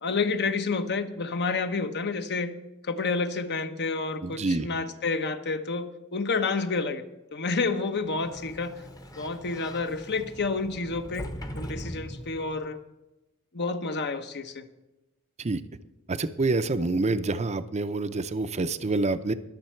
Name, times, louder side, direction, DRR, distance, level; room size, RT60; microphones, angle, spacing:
voice 1, 0.0-2.5 2.8-7.0 7.3-8.7 9.2-11.3 11.5-12.8 13.5-14.6, left 4 dB, 50° left, 9 dB, 1.0 m, -29 dB
voice 2, 4.2-4.7 15.4-15.6 16.1-19.3, right 3 dB, 30° right, 12 dB, 0.6 m, -27 dB
Sliding door, 8.0-12.7, equal, 15° left, 0.9 m, -41 dB
21.5 x 7.4 x 4.5 m, 1.0 s
head